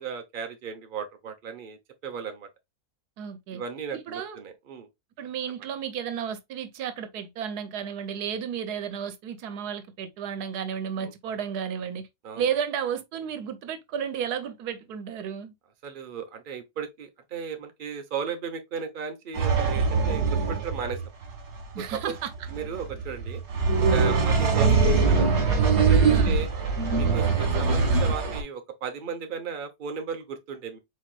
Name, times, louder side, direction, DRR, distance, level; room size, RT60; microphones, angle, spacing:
voice 1, 0.0-2.5 3.5-4.9 11.0-11.1 12.2-12.5 15.8-21.0 21.8-22.2 22.5-23.4 23.9-25.4 25.9-26.5 26.9-30.8, right 6 dB, 40° right, 0.9 m, -35 dB
voice 2, 3.2-3.6 3.9-4.4 5.2-12.1 12.4-15.5 21.7-22.3 26.1-26.4, right 8 dB, 90° right, 1.3 m, -32 dB
sound 1, 19.3-28.4, right 4 dB, 65° right, 2.0 m, -23 dB
4.7 x 4.3 x 2.3 m
omnidirectional pair, 1.6 m